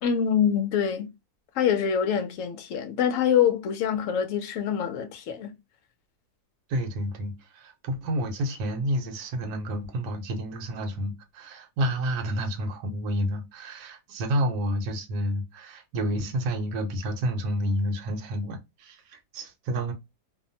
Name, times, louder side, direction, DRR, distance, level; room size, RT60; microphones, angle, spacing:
voice 1, 0.0-1.1 1.5-5.5, left 8 dB, 65° left, 0.8 m, -25 dB
voice 2, 6.7-19.9, equal, 70° right, 1.1 m, -30 dB
2.8 x 2.1 x 2.6 m
omnidirectional pair, 1.8 m